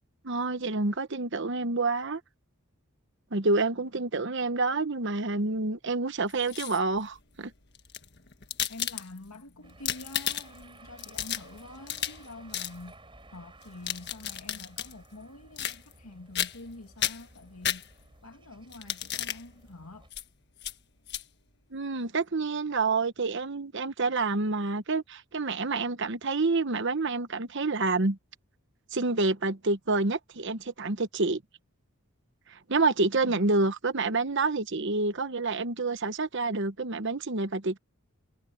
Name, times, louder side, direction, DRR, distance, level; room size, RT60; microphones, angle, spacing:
voice 1, 0.2-2.2 3.3-7.5 21.7-28.2 28.9-31.4 32.5-37.8, right 3 dB, 55° right, 1.0 m, -28 dB
sound 1, 6.3-7.0 7.7-9.4 9.7-10.6 11.0-12.3 12.5-12.8 13.6-14.9 15.6-16.1 16.4-16.7 17.0-18.2 18.7-19.4 20.1-20.2 20.6-20.7 21.1-21.2, left 11 dB, 50° left, 1.6 m, -33 dB
voice 2, 8.7-13.0 13.3-17.9 18.2-20.1 33.2-33.5, left 2 dB, 85° left, 2.5 m, -46 dB
sound 2, 9.6-20.1, right 2 dB, 25° right, 7.2 m, -55 dB
head